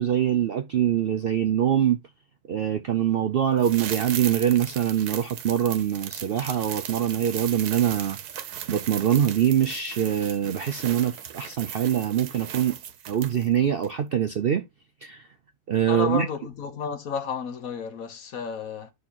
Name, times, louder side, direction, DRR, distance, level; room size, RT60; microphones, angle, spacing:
voice 1, 0.0-2.0 2.5-8.2 8.7-12.7 13.1-14.6 15.0-15.2 15.7-16.3, right 9 dB, 65° right, 0.5 m, -24 dB
sound 1, 3.6-13.6 13.8-13.9, right 9 dB, 90° right, 1.3 m, -37 dB
voice 2, 15.9-18.9, left 6 dB, 65° left, 1.5 m, -32 dB
9.5 x 5.7 x 2.9 m
omnidirectional pair, 1.6 m